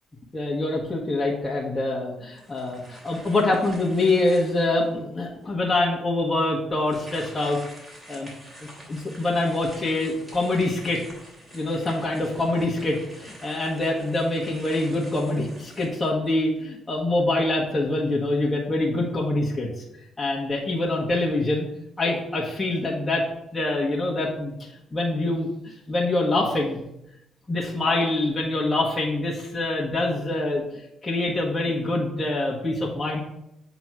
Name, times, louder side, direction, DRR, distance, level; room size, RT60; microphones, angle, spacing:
voice 1, 0.3-7.6 8.1-8.3 8.6-11.0 11.5-19.7 20.2-21.6 22.0-23.2 23.5-24.5 24.9-25.5 25.9-26.8 27.5-30.6 31.0-33.2, left 2 dB, 20° left, -4 dB, 1.3 m, -25 dB
sound 1, 2.3-4.9 5.4-5.5 6.8-16.6, equal, 20° right, 2.9 m, -47 dB
7.7 x 3.1 x 5.9 m, 0.82 s
cardioid pair, 90°, 0 cm